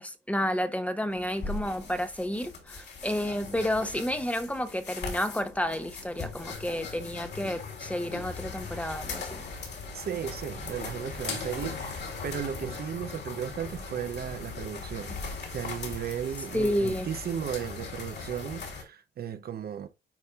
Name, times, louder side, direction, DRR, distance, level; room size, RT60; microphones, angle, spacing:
voice 1, 0.0-9.5 16.5-17.1, equal, 5° left, 1.0 m, -31 dB
sound 1, 1.1-18.8, left 4 dB, 60° left, 3.2 m, -39 dB
voice 2, 9.9-19.9, right 9 dB, 50° right, 0.7 m, -35 dB
9.8 x 4.2 x 2.4 m
cardioid pair, 90°, 20 cm